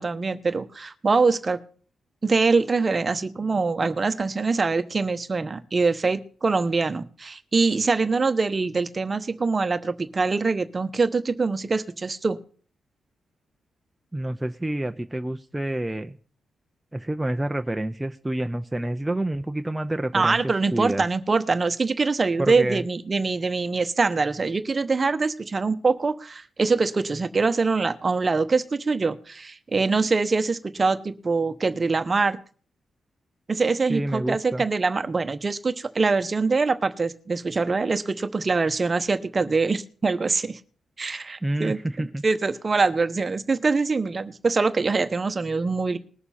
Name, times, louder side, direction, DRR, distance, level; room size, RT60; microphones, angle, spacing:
voice 1, 0.0-1.6 2.2-12.4 20.1-32.4 33.5-40.6 41.0-41.8 42.2-46.0, right 4 dB, 40° right, 11 dB, 1.0 m, -24 dB
voice 2, 14.1-16.2 16.9-20.4 20.7-21.0 22.4-22.8 33.9-34.7 41.4-42.2, right 1 dB, 10° right, 6 dB, 0.7 m, -28 dB
20.5 x 6.8 x 4.3 m, 0.43 s
cardioid pair, 60°, 0 cm